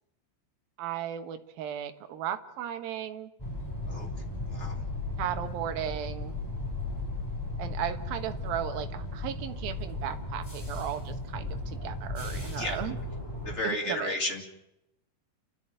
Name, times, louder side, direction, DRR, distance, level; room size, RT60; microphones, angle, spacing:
voice 1, 0.8-3.3 5.2-6.4 7.6-13.0 13.6-14.2, right 10 dB, 65° right, 7 dB, 2.7 m, -35 dB
sound 1, 3.4-13.6, left 2 dB, 5° left, 3.1 m, -36 dB
voice 2, 13.4-14.4, left 2 dB, 30° left, 1 dB, 1.1 m, -33 dB
30.0 x 12.5 x 9.0 m, 0.88 s
omnidirectional pair, 5.5 m